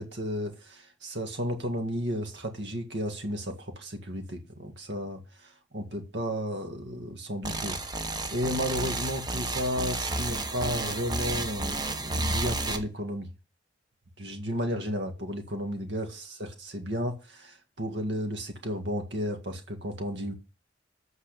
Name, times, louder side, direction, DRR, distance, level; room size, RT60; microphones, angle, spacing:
voice 1, 0.0-13.3 14.2-20.3, equal, 70° right, 2.0 m, -33 dB
sound 1, 7.4-12.8, right 2 dB, 25° right, 1.1 m, -31 dB
8.3 x 5.4 x 6.7 m
head